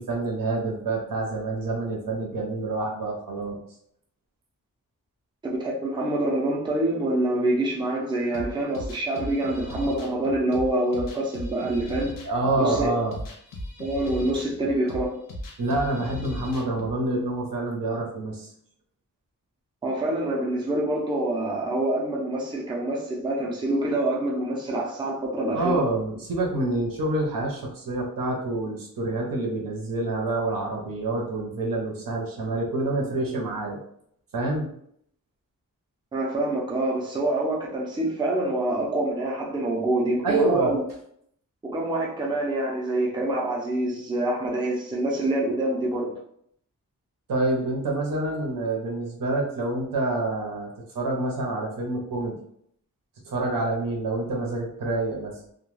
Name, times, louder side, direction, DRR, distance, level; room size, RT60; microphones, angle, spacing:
voice 1, 0.0-3.6 12.2-13.2 15.6-18.5 25.5-33.8 34.3-34.7 40.2-40.7 47.3-52.4 53.3-55.3, right 2 dB, 80° right, 0 dB, 0.7 m, -27 dB
voice 2, 5.6-12.1 12.6-12.9 13.8-15.2 19.8-25.8 36.1-40.8 41.6-46.1, right 1 dB, 15° right, -2 dB, 0.4 m, -26 dB
sound 1, 8.3-16.9, left 1 dB, 75° left, 0.6 m, -37 dB
2.2 x 2.2 x 3.1 m, 0.68 s
wide cardioid pair, 170°, 33 cm